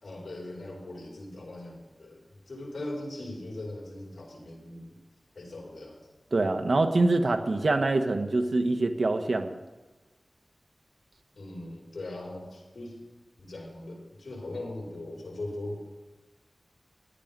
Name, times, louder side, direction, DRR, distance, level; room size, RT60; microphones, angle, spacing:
voice 1, 0.0-5.0 5.3-6.0 11.3-13.0 13.4-15.8, left 1 dB, 80° left, -3 dB, 4.7 m, -40 dB
voice 2, 6.3-9.6, right 2 dB, 60° right, 6 dB, 1.1 m, -25 dB
15.0 x 10.5 x 5.3 m, 1.2 s
wide cardioid pair, 85°, 0 cm